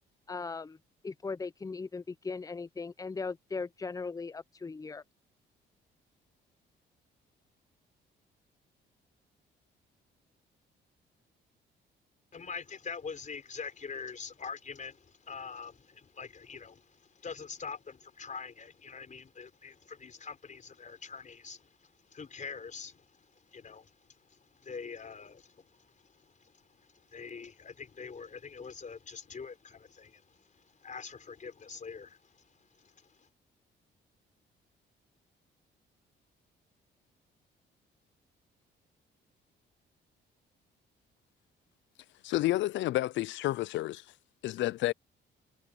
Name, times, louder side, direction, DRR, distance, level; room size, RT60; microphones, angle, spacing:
voice 1, 0.3-0.8 1.0-5.0, left 4 dB, 15° left, 0.7 m, -38 dB
voice 2, 12.3-33.3, left 5 dB, 40° left, 4.7 m, -45 dB
voice 3, 42.2-44.0 44.4-44.9, left 16 dB, 70° left, 0.4 m, -30 dB
cardioid pair, 90°, 20 cm